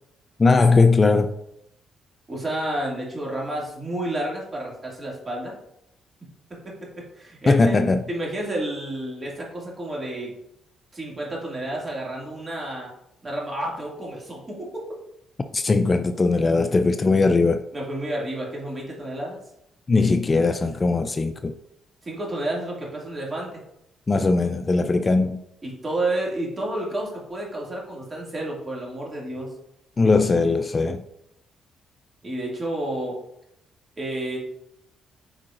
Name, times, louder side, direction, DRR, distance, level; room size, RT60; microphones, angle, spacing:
voice 1, 0.4-1.3 7.5-8.0 15.5-17.6 19.9-21.6 24.1-25.4 30.0-31.0, left 3 dB, 30° left, 0.4 m, -19 dB
voice 2, 2.3-5.5 6.5-7.8 8.1-10.3 10.9-12.9 13.2-14.9 17.7-19.4 22.0-23.6 25.6-29.5 32.2-33.2 34.0-34.4, right 1 dB, 30° right, 2.3 m, -30 dB
8.8 x 4.7 x 2.5 m
cardioid pair, 90°, 0 cm